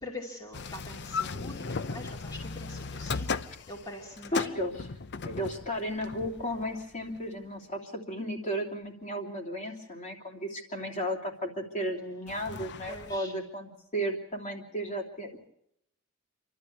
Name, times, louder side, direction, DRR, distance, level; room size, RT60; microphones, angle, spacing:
voice 1, 0.0-3.3 3.7-4.5 12.9-13.3, left 1 dB, 20° left, -2 dB, 2.6 m, -43 dB
sound 1, 0.5-7.2 12.3-13.2, left 4 dB, 55° left, 0.7 m, -37 dB
voice 2, 4.3-4.7 5.2-15.5, equal, 35° left, 0 dB, 3.1 m, -34 dB
28.5 x 12.5 x 8.4 m, 0.77 s
head